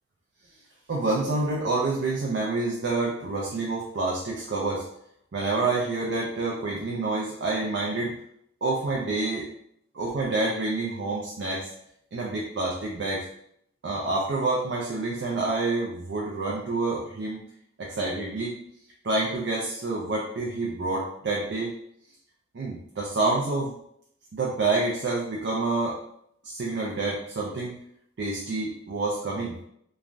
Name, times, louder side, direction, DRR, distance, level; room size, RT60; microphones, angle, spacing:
voice 1, 0.9-4.8 5.3-8.1 8.6-9.5 9.9-11.7 12.1-13.2 13.8-17.4 17.8-18.6 19.0-21.7 22.5-23.7 24.3-26.0 26.4-27.8 28.2-29.5, right 3 dB, 65° right, -3 dB, 0.4 m, -28 dB
3.1 x 2.3 x 2.5 m, 0.71 s
head